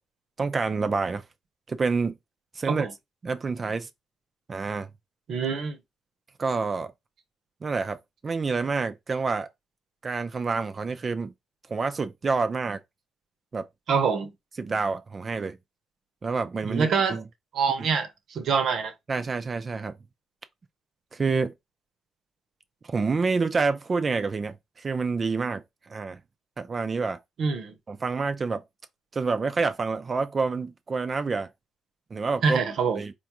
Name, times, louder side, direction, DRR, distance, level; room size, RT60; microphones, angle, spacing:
voice 1, 0.4-1.2 1.7-2.1 2.6-2.9 3.2-3.9 4.5-4.9 6.4-6.9 7.6-9.5 10.0-11.3 11.7-12.8 13.5-13.7 14.6-15.6 16.2-17.2 19.1-19.9 21.1-21.5 22.9-25.6 25.9-26.2 26.6-27.2 27.9-28.6 29.1-31.5 32.1-32.6 33.0-33.1, right 4 dB, 35° right, 0.4 m, -28 dB
voice 2, 5.3-5.8 13.9-14.3 16.6-17.2 17.5-18.9 27.4-27.7 32.4-33.0, right 5 dB, 65° right, 0.8 m, -25 dB
4.3 x 2.3 x 3.0 m
cardioid pair, 90°, 0 cm